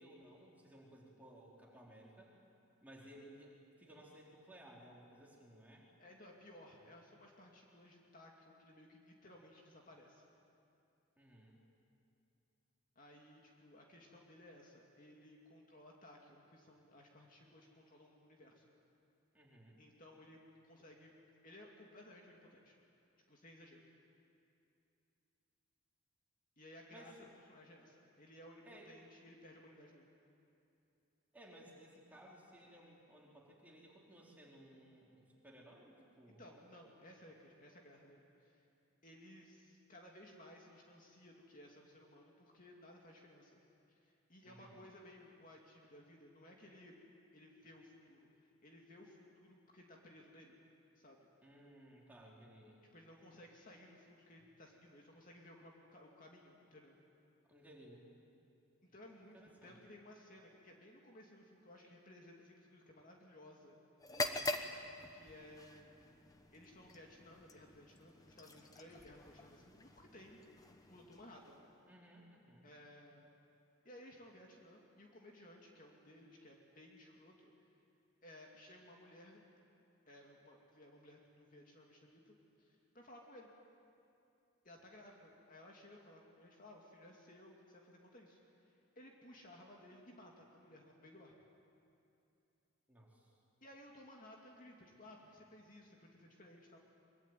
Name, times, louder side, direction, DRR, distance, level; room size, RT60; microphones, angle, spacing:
voice 1, 0.0-2.4 2.8-5.8 11.2-11.6 19.3-19.8 26.9-27.1 28.6-28.9 31.3-36.4 44.4-44.8 51.4-52.8 57.5-58.0 59.2-59.8 71.9-72.7 92.9-93.3, right 1 dB, 5° right, -3 dB, 4.0 m, -59 dB
voice 2, 6.0-10.2 13.0-18.7 19.8-21.1 21.4-22.8 23.3-23.8 26.6-30.0 36.4-38.7 39.0-43.6 43.9-47.0 47.3-50.6 51.0-51.3 52.9-57.0 58.8-63.8 64.1-64.6 65.1-65.9 66.5-70.4 70.7-71.7 72.6-73.3 73.8-77.5 78.2-79.4 80.1-83.5 84.6-91.3 93.6-96.8, left 1 dB, 35° left, 0 dB, 2.6 m, -58 dB
sound 1, 64.0-71.8, left 2 dB, 15° left, 1.1 m, -45 dB
24.0 x 23.0 x 9.4 m, 2.8 s
head